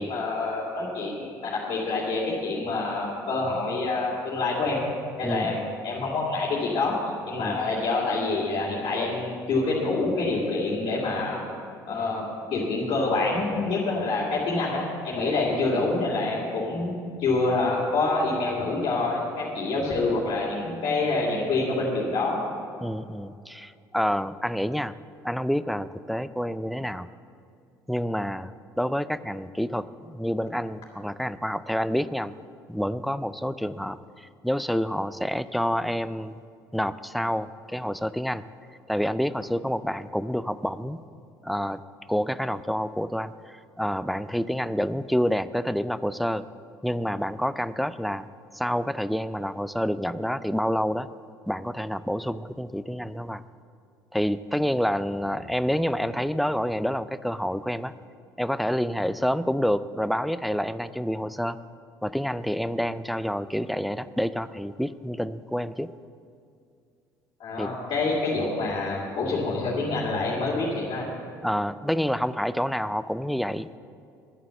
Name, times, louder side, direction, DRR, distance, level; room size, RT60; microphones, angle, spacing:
voice 1, 0.0-4.9 5.2-7.0 7.3-11.4 11.8-12.2 12.5-16.9 17.2-22.4 67.4-71.1, left 3 dB, 45° left, -6 dB, 2.8 m, -26 dB
voice 2, 5.2-5.7 7.4-7.6 22.8-25.0 25.2-27.1 27.9-32.3 32.7-36.4 36.7-38.5 38.9-41.0 41.4-41.8 42.1-46.4 46.8-48.3 48.5-51.1 51.5-53.4 54.1-57.9 58.4-61.6 62.0-65.9 67.6-67.8 71.4-73.8, equal, ahead, 15 dB, 0.4 m, -28 dB
10.5 x 9.2 x 7.8 m, 2.4 s
figure-of-eight pair, 60°, 11 cm